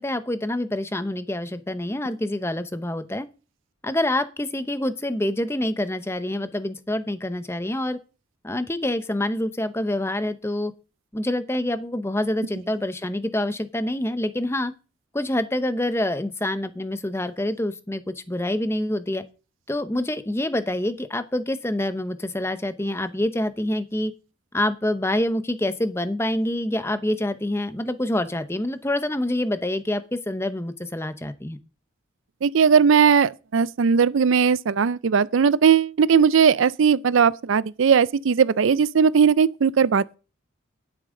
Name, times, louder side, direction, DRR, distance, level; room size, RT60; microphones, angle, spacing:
voice 1, 0.0-3.3 3.8-8.0 8.4-10.7 11.1-14.7 15.1-19.2 19.7-24.1 24.5-31.6, left 1 dB, 10° left, 0.7 m, -26 dB
voice 2, 32.4-40.2, right 6 dB, 70° right, 0.4 m, -18 dB
11.5 x 9.8 x 3.8 m
head